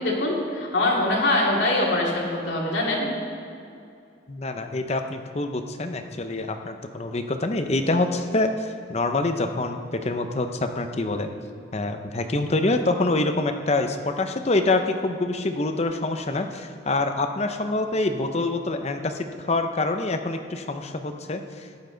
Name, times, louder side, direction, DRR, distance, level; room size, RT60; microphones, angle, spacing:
voice 1, 0.0-3.1, left 1 dB, 70° left, -3 dB, 2.4 m, -23 dB
voice 2, 4.3-11.3 11.7-21.7, left 2 dB, 35° left, 6 dB, 0.7 m, -26 dB
14.0 x 10.0 x 3.9 m, 2.5 s
head